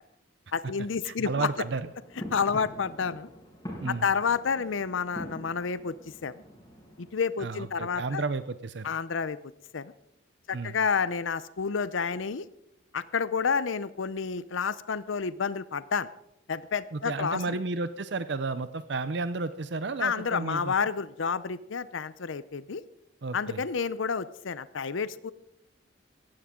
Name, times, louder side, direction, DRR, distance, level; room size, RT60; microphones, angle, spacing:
voice 1, 0.5-1.5 2.2-3.3 3.9-5.9 6.2-6.4 7.0-8.2 8.8-9.4 9.7-9.9 10.5-12.4 12.9-16.1 16.5-17.6 20.0-22.8 23.3-25.3, left 5 dB, 85° left, 16 dB, 0.6 m, -30 dB
voice 2, 1.0-1.9 3.8-4.0 7.4-8.9 10.5-10.8 16.9-20.7 23.2-23.6, right 3 dB, 60° right, 12 dB, 0.6 m, -32 dB
sound 1, 1.5-7.1, equal, 20° left, 7.0 m, -44 dB
17.5 x 15.5 x 3.7 m, 0.83 s
head